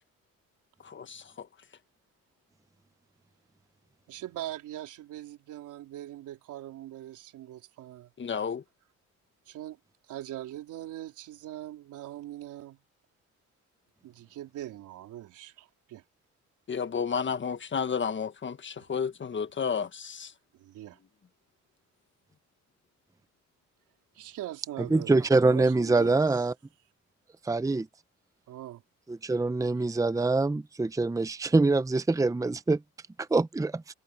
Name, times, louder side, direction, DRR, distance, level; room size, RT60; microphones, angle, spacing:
voice 1, 0.8-1.5 8.2-8.6 16.7-20.3, left 6 dB, 40° left, 1.5 m, -32 dB
voice 2, 4.1-8.1 9.5-9.8 10.1-12.8 14.0-16.0 18.8-18.9 20.5-21.0 24.1-26.2 28.5-28.8, right 13 dB, 90° right, 4.0 m, -41 dB
voice 3, 24.9-26.5 27.4-27.9 29.1-32.8 33.2-33.7, right 3 dB, 10° right, 0.7 m, -24 dB
cardioid pair, 90°, 30 cm